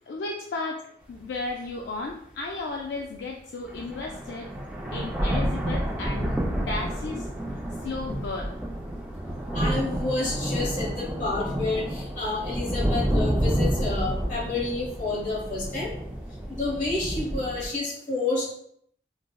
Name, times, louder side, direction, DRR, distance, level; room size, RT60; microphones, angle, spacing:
voice 1, 0.1-4.5 4.9-8.6, left 3 dB, 75° left, 0 dB, 0.3 m, -34 dB
sound 1, 1.1-1.2 1.9-2.0 3.2-3.3 3.7-17.7, right 1 dB, 5° right, 0.3 m, -29 dB
voice 2, 9.5-15.9 16.5-18.5, left 3 dB, 45° left, -4 dB, 1.1 m, -29 dB
4.7 x 2.0 x 2.2 m, 0.66 s
head